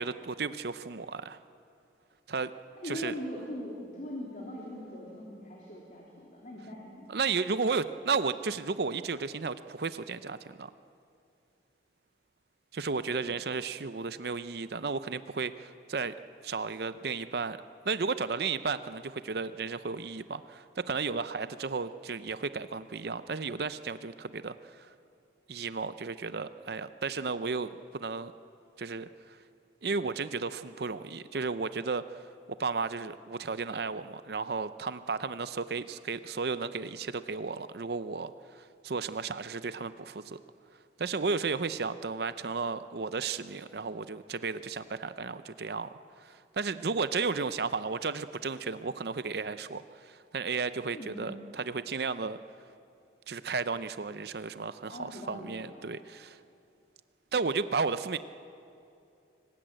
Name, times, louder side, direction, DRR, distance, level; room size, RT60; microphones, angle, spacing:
voice 1, 0.0-1.4 2.3-2.5 2.8-3.1 7.1-10.7 12.7-16.1 16.4-17.6 17.8-24.9 25.5-28.3 28.8-29.4 29.8-40.4 41.0-45.9 46.2-52.4 53.3-56.4 57.3-58.2, right 4 dB, 60° right, 13 dB, 0.6 m, -33 dB
voice 2, 2.7-7.4 50.9-51.3 54.8-55.9, equal, 45° left, -3 dB, 3.4 m, -41 dB
24.5 x 19.5 x 8.9 m, 2.6 s
head